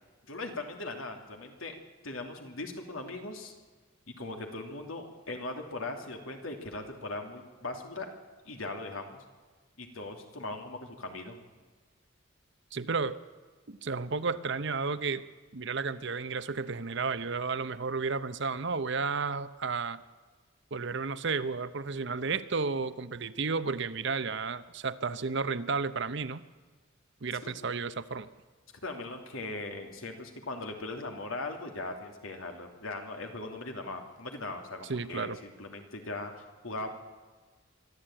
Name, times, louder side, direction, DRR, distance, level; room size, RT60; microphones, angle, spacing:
voice 1, 0.3-1.7 2.0-3.5 4.2-8.1 8.4-9.2 9.8-11.4 27.4-27.5 28.8-36.9, left 2 dB, 85° left, 4 dB, 2.8 m, -39 dB
voice 2, 12.7-13.2 13.7-15.2 15.5-20.0 20.7-26.4 27.2-28.3 34.9-35.4, right 4 dB, 60° right, 13 dB, 0.8 m, -32 dB
24.0 x 12.5 x 8.9 m, 1.4 s
head